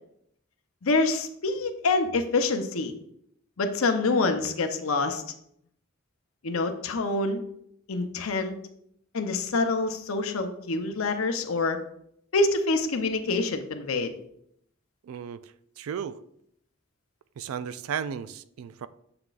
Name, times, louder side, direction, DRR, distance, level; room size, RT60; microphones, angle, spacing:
voice 1, 0.8-2.9 3.6-5.2 6.4-7.4 7.9-8.5 9.1-11.8 12.3-14.1, left 3 dB, 90° left, 6 dB, 0.7 m, -26 dB
voice 2, 15.0-16.2 17.4-18.9, right 7 dB, 85° right, 14 dB, 0.3 m, -35 dB
7.8 x 5.9 x 2.4 m, 0.71 s
head